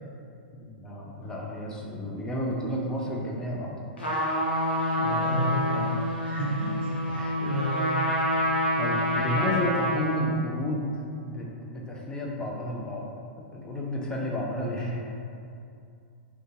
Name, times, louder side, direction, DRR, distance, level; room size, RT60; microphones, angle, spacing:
voice 1, 0.6-3.8 6.9-7.4 8.8-10.9 11.2-13.1 13.4-15.0, equal, 10° left, -3 dB, 0.4 m, -31 dB
Trumpet, 4.0-10.3, left 1 dB, 85° left, 0.6 m, -27 dB
voice 2, 5.0-5.9 6.2-7.9, right 1 dB, 70° right, -4 dB, 0.4 m, -31 dB
2.6 x 2.3 x 2.8 m, 2.5 s
hypercardioid pair, 110°, 6 cm